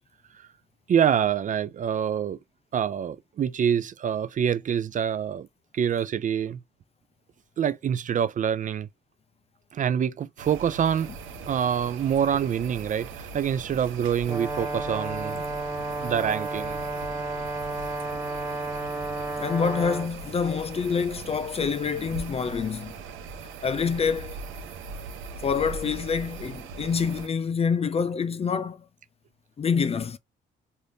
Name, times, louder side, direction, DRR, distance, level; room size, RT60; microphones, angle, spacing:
voice 1, 0.9-2.4 2.7-5.5 5.7-6.6 7.6-8.9 9.7-11.1 11.5-15.4 16.0-16.8, right 8 dB, 40° right, 0.4 m, -26 dB
sound 1, 10.4-27.3, right 5 dB, 80° right, 0.8 m, -40 dB
Brass instrument, 14.2-20.1, right 2 dB, 15° right, 1.1 m, -32 dB
voice 2, 19.4-22.9 23.6-24.4 25.4-28.8 29.6-30.2, left 6 dB, 30° left, 0.4 m, -26 dB
3.3 x 2.5 x 2.6 m
cardioid pair, 90°, 20 cm